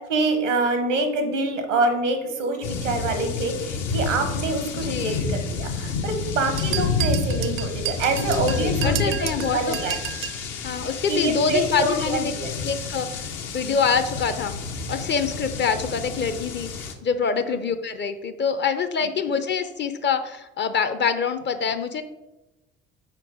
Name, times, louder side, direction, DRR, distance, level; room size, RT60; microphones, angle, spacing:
voice 1, 0.0-9.1 9.5-10.0 11.1-12.5 17.5-17.6, right 2 dB, 85° right, 7 dB, 0.9 m, -26 dB
sound 1, 2.6-16.9, left 4 dB, 60° left, 0.8 m, -29 dB
voice 2, 4.8-5.3 8.6-9.8 10.6-12.3 12.6-13.1 13.5-14.5 14.9-22.0, left 6 dB, 30° left, 10 dB, 0.6 m, -25 dB
sound 2, 6.6-10.4, right 12 dB, 40° right, 0.4 m, -31 dB
4.5 x 4.4 x 4.9 m, 1.0 s
figure-of-eight pair, 55°, 36 cm